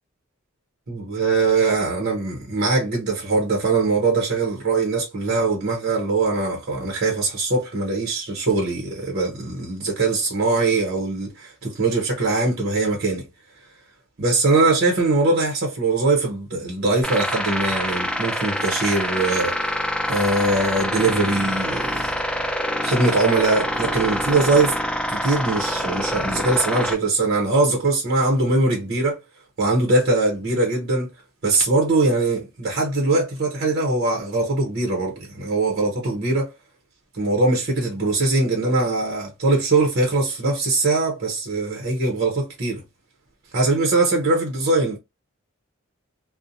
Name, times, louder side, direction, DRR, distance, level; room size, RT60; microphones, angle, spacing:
voice 1, 0.9-13.2 14.2-19.8 20.1-22.2 22.8-24.8 25.1-29.2 29.6-31.1 31.4-36.5 37.1-42.8 43.5-45.0, right 3 dB, 50° right, 0.7 m, -21 dB
sound 1, 17.0-26.9, equal, 5° left, 0.8 m, -25 dB
2.6 x 2.1 x 2.6 m
head